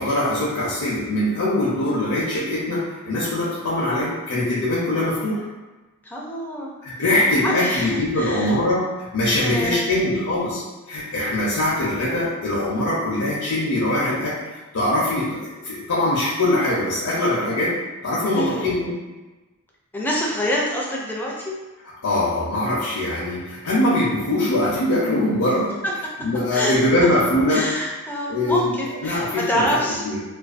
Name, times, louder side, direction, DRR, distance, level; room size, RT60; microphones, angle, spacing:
voice 1, 0.0-5.4 6.8-14.3 14.7-17.7 18.0-18.9 22.0-25.8 26.2-27.7 28.3-28.7 29.0-29.7 30.0-30.2, left 1 dB, 85° left, -7 dB, 0.6 m, -22 dB
voice 2, 6.0-6.7 7.4-8.6 9.3-9.9 18.3-18.7 19.9-21.6 26.5-26.8 27.5-30.0, equal, 10° left, -4 dB, 0.4 m, -26 dB
2.5 x 2.2 x 2.4 m, 1.2 s
head